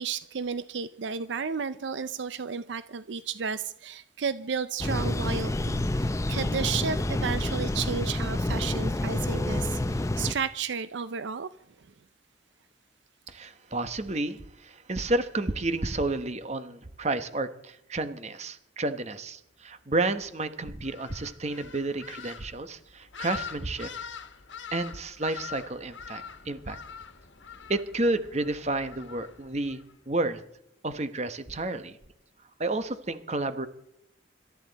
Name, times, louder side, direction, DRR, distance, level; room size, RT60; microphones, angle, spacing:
voice 1, 0.0-11.5, right 6 dB, 70° right, 14 dB, 0.5 m, -33 dB
sound 1, 4.8-10.3, left 1 dB, 15° left, 0.5 m, -28 dB
voice 2, 13.3-23.9 24.7-26.8 27.7-29.8 30.1-30.4 30.8-32.0 32.6-33.7, right 2 dB, 35° right, 11 dB, 1.0 m, -31 dB
sound 2, 20.8-29.9, left 7 dB, 75° left, 1.4 m, -44 dB
26.0 x 13.0 x 4.1 m, 0.77 s
head